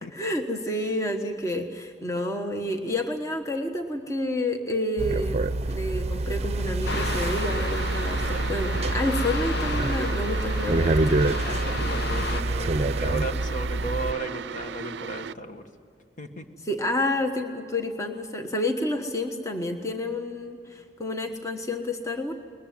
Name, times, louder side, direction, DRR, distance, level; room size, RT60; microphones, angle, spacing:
voice 1, 0.1-11.0 16.6-22.3, left 1 dB, 20° left, 4 dB, 1.3 m, -29 dB
sound 1, 5.0-14.1, right 2 dB, 35° right, 0.7 m, -27 dB
sound 2, 6.9-12.4, left 4 dB, 65° left, 0.7 m, -33 dB
sound 3, 6.9-15.3, right 7 dB, 70° right, 0.5 m, -36 dB
voice 2, 11.4-15.6 16.2-16.4, right 2 dB, 45° left, 5 dB, 1.7 m, -35 dB
22.0 x 21.0 x 9.5 m, 2.3 s
head